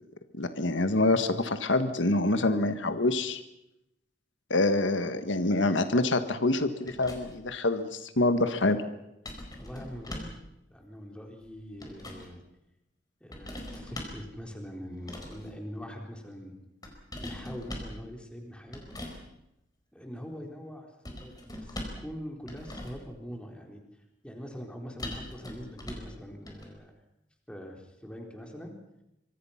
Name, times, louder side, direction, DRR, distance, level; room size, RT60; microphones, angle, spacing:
voice 1, 0.3-3.4 4.5-8.8, left 2 dB, 85° left, 9 dB, 1.6 m, -26 dB
sound 1, 6.9-7.5 9.2-10.4 11.4-12.3 13.3-14.3 15.0-15.5 16.8-18.0 18.7-19.2 21.0-22.1 22.4-23.1 25.0-26.1 26.5-26.7, left 1 dB, 20° left, 4.6 m, -41 dB
voice 2, 9.6-10.3 10.7-12.4 13.2-16.5 17.1-18.9 19.9-23.8 24.2-26.9 27.5-28.7, equal, 5° left, 2 dB, 4.0 m, -43 dB
25.5 x 23.5 x 5.8 m, 0.87 s
head